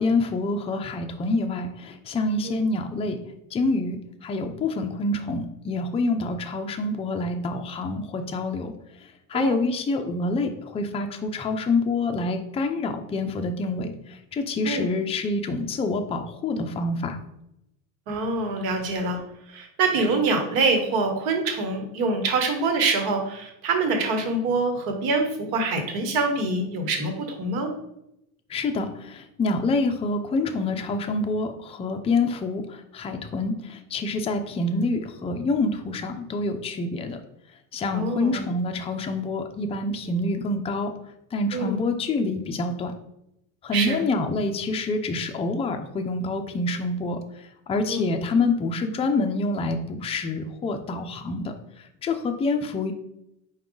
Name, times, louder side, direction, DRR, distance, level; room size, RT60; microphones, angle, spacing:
voice 1, 0.0-3.2 3.5-8.7 9.3-17.2 28.5-37.2 37.7-40.9 41.3-42.9 43.6-52.9, left 3 dB, 15° left, 6 dB, 0.4 m, -27 dB
voice 2, 18.1-19.2 19.5-27.7 37.9-38.4 41.5-41.8 43.7-44.0 47.9-48.1, right 3 dB, 65° right, 4 dB, 1.2 m, -25 dB
4.8 x 2.3 x 3.7 m, 0.83 s
supercardioid pair, 95°, 40 cm